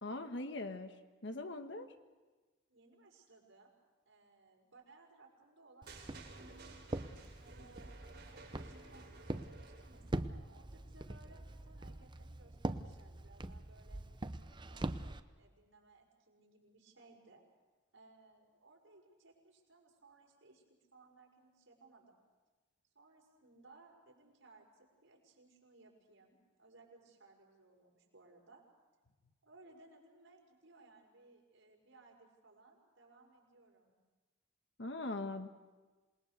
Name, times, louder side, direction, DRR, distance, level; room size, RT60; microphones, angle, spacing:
voice 1, 0.0-0.9 1.2-1.9 34.8-35.5, left 2 dB, 60° left, 7 dB, 1.4 m, -41 dB
voice 2, 2.7-3.8 4.1-7.1 7.4-9.1 9.4-14.0 14.5-14.9 15.4-17.4 17.9-20.6 20.9-22.2 22.9-28.6 29.4-33.9, right 3 dB, 80° right, -1 dB, 5.8 m, -63 dB
Walk footsteps, 5.8-15.2, right 1 dB, 25° right, 0.7 m, -43 dB
sound 1, 5.9-10.1, right 3 dB, 50° right, 6.3 m, -55 dB
27.5 x 20.0 x 6.6 m, 1.3 s
head